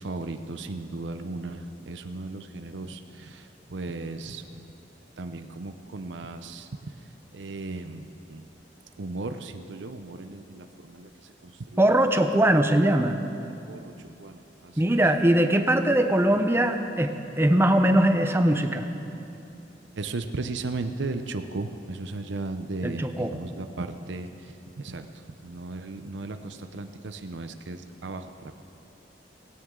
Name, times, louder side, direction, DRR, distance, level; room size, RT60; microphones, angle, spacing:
voice 1, 0.0-4.6 5.2-6.7 7.3-8.4 9.0-11.1 11.4-11.8 13.4-15.0 19.9-24.3 24.8-25.1 25.4-28.6, right 3 dB, 85° right, 8 dB, 0.7 m, -36 dB
voice 2, 11.8-13.2 14.8-18.9 22.8-23.3, right 1 dB, 15° right, 7 dB, 0.7 m, -21 dB
18.0 x 16.5 x 3.8 m, 2.8 s
head